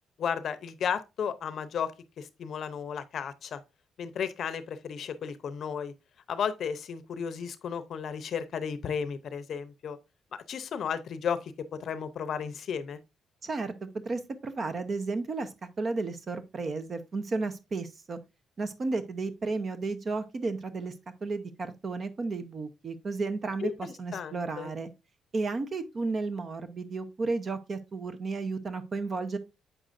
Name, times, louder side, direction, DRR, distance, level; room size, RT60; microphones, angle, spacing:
voice 1, 0.2-3.6 4.0-5.9 6.3-10.0 10.3-13.0 23.6-24.7, left 7 dB, 60° left, 0.6 m, -34 dB
voice 2, 13.4-15.5 15.8-18.2 18.6-20.9 21.2-24.9 25.3-29.4, right 3 dB, 40° right, 0.8 m, -33 dB
7.8 x 6.2 x 2.5 m
cardioid pair, 90°, 0 cm